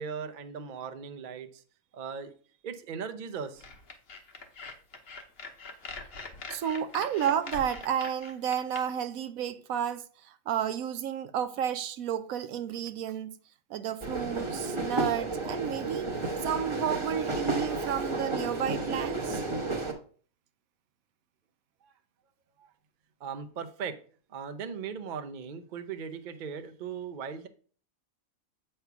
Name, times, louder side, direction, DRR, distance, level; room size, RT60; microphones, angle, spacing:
voice 1, 0.0-1.6 1.9-2.3 2.6-3.6 21.8-21.9 22.6-22.7 23.2-23.9 24.3-27.5, right 6 dB, 45° right, 0.6 m, -38 dB
sound 1, 3.6-8.8, left 4 dB, 50° left, 1.1 m, -43 dB
voice 2, 6.5-13.4 13.7-19.4, right 9 dB, 80° right, 1.0 m, -32 dB
sound 2, 14.0-19.9, right 3 dB, 25° right, 0.9 m, -32 dB
8.0 x 3.3 x 5.9 m
omnidirectional pair, 1.5 m